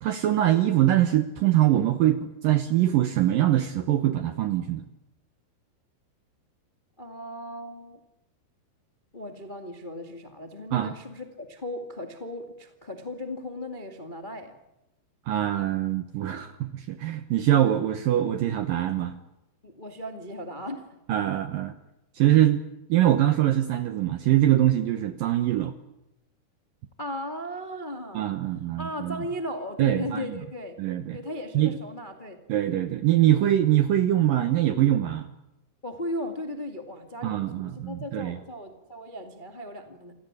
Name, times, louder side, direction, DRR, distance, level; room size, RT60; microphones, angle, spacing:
voice 1, 0.0-4.8 10.7-11.0 15.3-19.2 21.1-21.7 22.2-22.6 22.9-25.7 28.1-29.2 29.8-30.2 30.8-31.2 31.5-31.7 32.5-35.3 37.2-38.4, right 12 dB, 75° right, 11 dB, 2.1 m, -23 dB
voice 2, 7.0-8.0 9.1-14.5 19.6-20.9 27.0-28.3 28.8-30.8 31.1-32.4 35.8-40.1, left 1 dB, 45° left, 6 dB, 0.6 m, -36 dB
27.5 x 17.5 x 9.9 m, 0.93 s
omnidirectional pair, 5.3 m